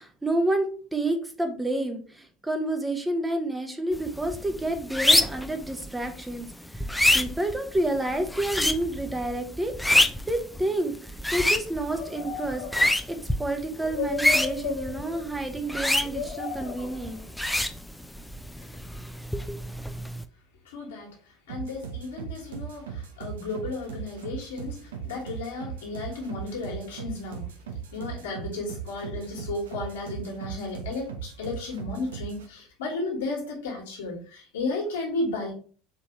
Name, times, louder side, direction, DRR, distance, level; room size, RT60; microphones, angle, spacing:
voice 1, 0.0-6.5 6.7-6.9 7.1-12.6 13.1-17.2, right 1 dB, 10° right, 5 dB, 0.8 m, -29 dB
sound 1, 3.9-20.2, left 1 dB, 5° left, 0.4 m, -28 dB
sound 2, 12.0-13.2 13.7-15.4 16.0-17.3 18.6-18.8, left 7 dB, 60° left, 1.1 m, -35 dB
voice 2, 20.6-21.1 21.5-27.5 27.9-35.5, left 3 dB, 75° left, -1 dB, 1.6 m, -33 dB
sound 3, 21.5-32.5, right 7 dB, 80° right, 0.6 m, -39 dB
4.5 x 3.3 x 3.0 m, 0.40 s
hypercardioid pair, 70°, 0 cm